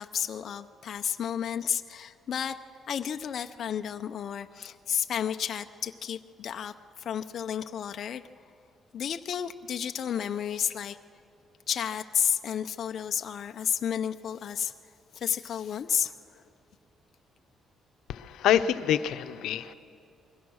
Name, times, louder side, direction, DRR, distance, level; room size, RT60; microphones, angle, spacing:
voice 1, 0.0-2.6 2.9-8.2 8.9-11.0 11.7-14.7 15.1-16.4, left 8 dB, 50° left, 7 dB, 0.6 m, -32 dB
voice 2, 18.1-19.7, left 10 dB, 85° left, 10 dB, 0.8 m, -26 dB
28.5 x 22.0 x 6.3 m, 2.5 s
cardioid pair, 150°, 0 cm